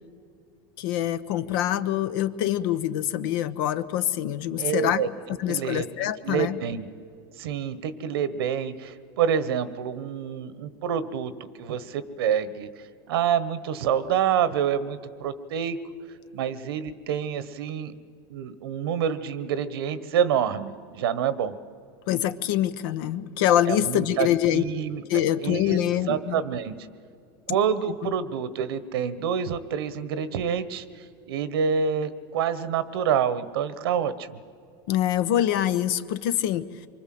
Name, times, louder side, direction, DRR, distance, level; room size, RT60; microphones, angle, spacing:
voice 1, 0.8-5.0 5.4-6.6 22.1-24.6 25.1-26.4 34.9-36.7, left 11 dB, 70° left, 13 dB, 1.0 m, -25 dB
voice 2, 4.6-5.1 5.5-6.9 7.4-12.7 13.1-15.8 16.3-17.9 18.3-21.6 23.7-24.3 24.5-25.0 25.4-26.9 27.5-34.4, right 8 dB, 85° right, 14 dB, 1.2 m, -27 dB
24.5 x 24.0 x 7.8 m, 2.5 s
supercardioid pair, 140°, 12 cm